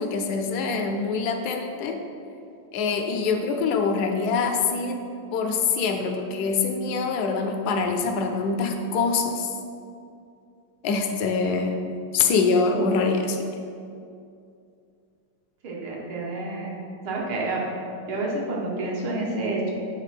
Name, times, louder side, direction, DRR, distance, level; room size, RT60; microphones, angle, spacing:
voice 1, 0.0-2.0 2.7-5.0 5.3-9.5 10.8-11.9 12.1-13.4, left 4 dB, 75° left, 4 dB, 0.9 m, -24 dB
voice 2, 15.6-16.8 17.0-17.6 18.1-19.7, right 2 dB, 90° right, -3 dB, 2.0 m, -29 dB
8.0 x 3.4 x 5.8 m, 2.5 s
omnidirectional pair, 2.3 m